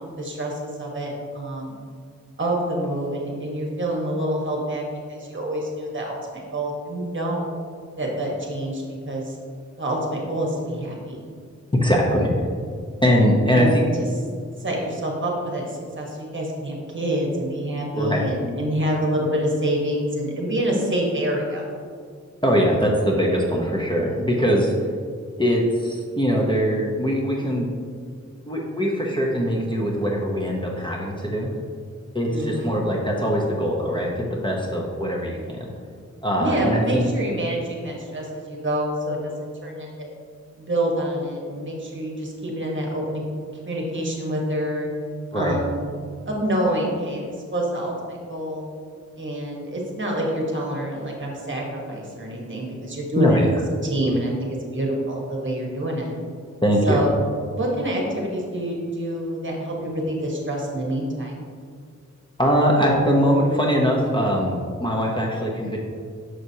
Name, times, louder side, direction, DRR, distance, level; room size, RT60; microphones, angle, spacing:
voice 1, 0.0-1.7 2.4-4.8 5.1-7.5 8.0-9.4 9.8-11.2 13.5-14.1 14.6-21.6 32.3-32.8 36.4-40.1 40.6-43.2 43.6-44.9 45.3-45.8 46.3-48.7 49.2-53.4 53.8-56.1 56.8-57.1 57.5-61.3, right 1 dB, 40° right, -1 dB, 1.2 m, -27 dB
voice 2, 11.8-12.3 13.0-13.8 18.0-18.3 22.4-24.7 25.4-27.7 28.5-31.5 32.1-35.7 36.2-37.1 45.3-45.6 53.2-53.5 56.6-57.0 62.4-65.8, equal, 15° left, -3 dB, 0.7 m, -21 dB
6.3 x 5.9 x 2.8 m, 2.1 s
wide cardioid pair, 100°, 30 cm